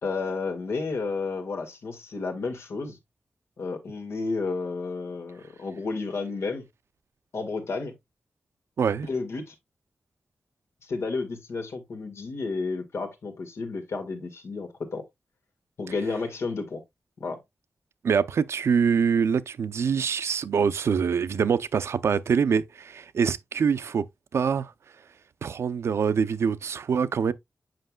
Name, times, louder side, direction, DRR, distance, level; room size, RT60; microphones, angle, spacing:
voice 1, 0.0-3.0 3.6-6.6 7.3-7.9 9.1-9.5 10.8-15.0 15.8-16.8 17.2-17.4, left 4 dB, 80° left, 1.8 m, -31 dB
voice 2, 8.8-9.1 18.0-24.1 24.3-24.7 25.4-27.3, right 6 dB, 85° right, 0.5 m, -24 dB
7.8 x 5.8 x 2.2 m
wide cardioid pair, 160°, 4 cm